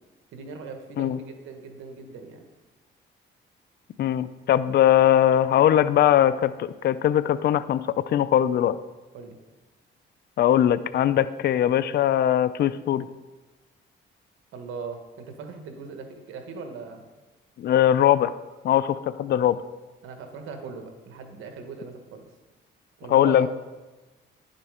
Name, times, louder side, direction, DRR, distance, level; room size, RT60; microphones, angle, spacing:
voice 1, 0.3-2.5 9.1-9.4 14.5-17.0 20.0-22.3 23.0-23.5, right 4 dB, 85° right, 5 dB, 1.5 m, -39 dB
voice 2, 4.0-8.8 10.4-13.1 17.6-18.3 18.6-19.6 23.1-23.5, left 11 dB, 55° left, 14 dB, 0.4 m, -21 dB
10.5 x 7.4 x 5.0 m, 1.2 s
cardioid pair, 90°, 20 cm